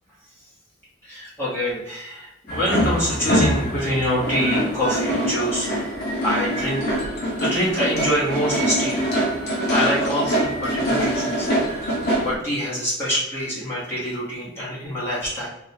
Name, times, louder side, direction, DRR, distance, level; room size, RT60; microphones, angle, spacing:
voice 1, 1.0-5.9 6.2-6.8 7.4-9.1 9.7-11.9 12.2-15.5, equal, 15° left, -9 dB, 1.1 m, -25 dB
sound 1, 2.5-12.4, equal, 55° left, 0.8 m, -24 dB
3.5 x 2.3 x 2.7 m, 0.82 s
head